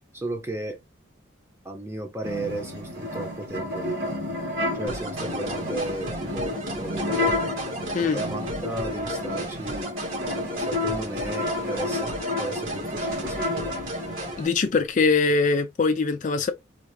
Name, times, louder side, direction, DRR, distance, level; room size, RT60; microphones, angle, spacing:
voice 1, 0.1-0.8 1.6-4.0 4.7-7.5 8.1-9.9 10.6-13.7, right 2 dB, 15° right, 0.8 m, -34 dB
sound 1, 2.2-14.4, left 2 dB, 60° right, 1.7 m, -31 dB
sound 2, 4.9-14.5, right 1 dB, 90° right, 2.0 m, -34 dB
voice 2, 14.4-16.5, left 4 dB, 40° left, 0.3 m, -22 dB
3.8 x 2.3 x 3.1 m
head